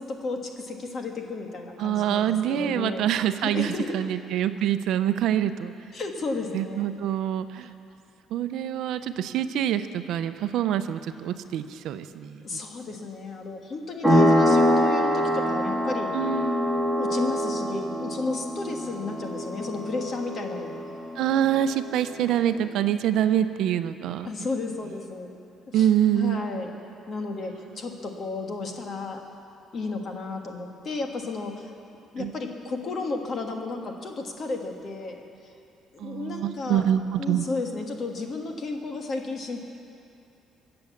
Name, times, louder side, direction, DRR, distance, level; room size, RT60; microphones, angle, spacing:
voice 1, 0.0-3.1 3.4-4.0 5.9-7.0 7.6-7.7 12.4-16.2 17.0-20.8 24.2-25.4 25.7-25.9 26.1-26.7 27.1-29.2 29.7-31.7 32.1-35.5 35.9-36.9 37.2-39.6, left 3 dB, 35° left, 3 dB, 1.5 m, -33 dB
voice 2, 1.8-5.7 6.5-7.7 8.3-12.6 16.1-16.7 21.2-24.3 25.7-26.5 32.2-32.3 36.0-37.4, right 10 dB, 65° right, 11 dB, 0.6 m, -25 dB
sound 1, 14.0-22.4, equal, 5° left, 2.0 m, -25 dB
23.5 x 7.9 x 7.2 m, 2.7 s
cardioid pair, 175°, 0 cm